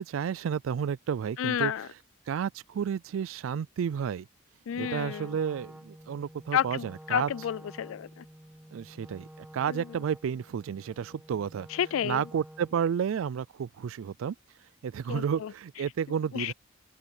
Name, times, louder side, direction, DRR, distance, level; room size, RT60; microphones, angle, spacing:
voice 1, 0.0-1.7 2.3-4.3 4.8-7.3 8.7-11.7 12.0-14.4 14.8-16.5, right 7 dB, 85° right, 0.3 m, -31 dB
voice 2, 1.4-1.9 4.7-5.3 6.5-8.2 9.7-9.9 11.7-12.2 15.1-15.5 16.3-16.5, left 9 dB, 85° left, 0.3 m, -31 dB
Wind instrument woodwind instrument, 4.7-12.9, right 1 dB, 5° right, 0.3 m, -50 dB
open air
head